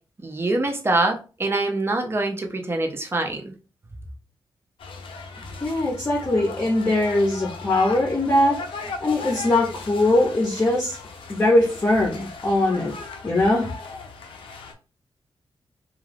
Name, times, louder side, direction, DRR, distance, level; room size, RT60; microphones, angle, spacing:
voice 1, 0.2-3.5, right 2 dB, 30° right, 3 dB, 0.6 m, -24 dB
sound 1, 4.8-14.7, left 4 dB, 85° left, 0.5 m, -37 dB
voice 2, 5.6-11.0 11.3-12.9 13.2-13.7, left 1 dB, 30° left, -3 dB, 0.7 m, -21 dB
2.3 x 2.3 x 3.3 m, 0.34 s
wide cardioid pair, 115°, 9 cm